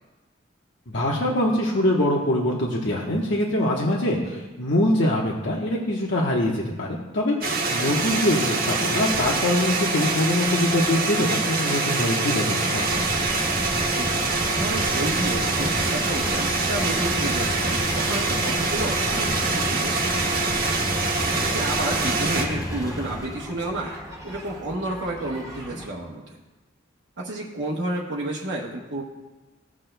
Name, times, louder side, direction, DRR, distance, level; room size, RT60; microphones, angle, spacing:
voice 1, 0.9-13.0, left 1 dB, 70° left, -3 dB, 1.1 m, -24 dB
sound 1, 7.4-22.4, right 3 dB, 50° right, 1.2 m, -25 dB
sound 2, 12.6-23.5, left 1 dB, 20° left, 0.7 m, -32 dB
voice 2, 13.9-20.7 21.4-24.0 24.2-26.4 27.2-29.0, right 1 dB, 70° right, -3 dB, 1.0 m, -31 dB
sound 3, 14.8-25.9, equal, 20° right, 1.6 m, -41 dB
17.0 x 6.2 x 2.2 m, 1.1 s
head